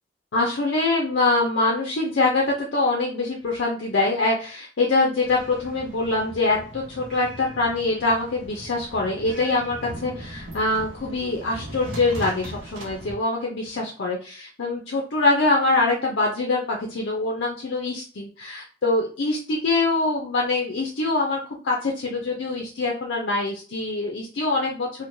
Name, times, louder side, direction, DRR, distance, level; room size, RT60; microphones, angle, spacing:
voice 1, 0.3-24.9, left 2 dB, 65° left, -2 dB, 0.5 m, -24 dB
sound 1, 5.2-13.1, right 1 dB, 80° right, 0.6 m, -39 dB
3.0 x 2.1 x 2.6 m, 0.40 s
head